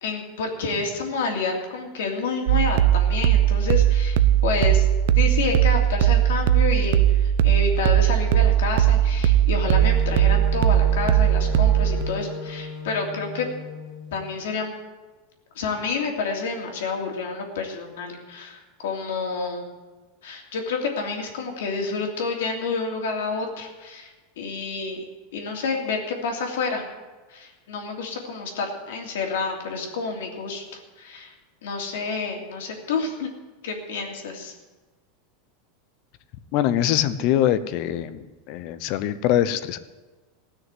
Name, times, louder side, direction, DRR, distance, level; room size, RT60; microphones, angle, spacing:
voice 1, 0.0-4.2 4.4-4.9 5.1-13.5 14.1-14.7 15.5-19.7 20.2-24.1 24.4-25.0 25.3-26.8 27.3-31.3 31.6-33.3 33.6-34.5, left 4 dB, 85° left, 1 dB, 3.0 m, -29 dB
sound 1, 2.5-12.0, right 11 dB, 70° right, 0.7 m, -19 dB
Wind instrument woodwind instrument, 9.6-14.3, left 4 dB, 30° left, 3.5 m, -35 dB
voice 2, 36.5-39.8, left 11 dB, 50° left, 13 dB, 0.8 m, -23 dB
16.0 x 6.4 x 9.3 m, 1.3 s
supercardioid pair, 145°, 0 cm